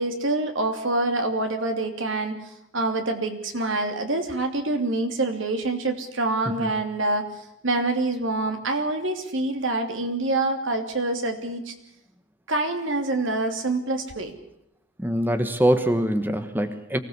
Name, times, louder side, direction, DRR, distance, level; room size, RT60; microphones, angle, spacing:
voice 1, 0.0-11.7 12.5-14.3, right 2 dB, 80° right, 6 dB, 3.0 m, -26 dB
voice 2, 15.0-17.0, right 1 dB, 10° right, 9 dB, 1.2 m, -23 dB
23.5 x 17.0 x 8.2 m, 0.79 s
head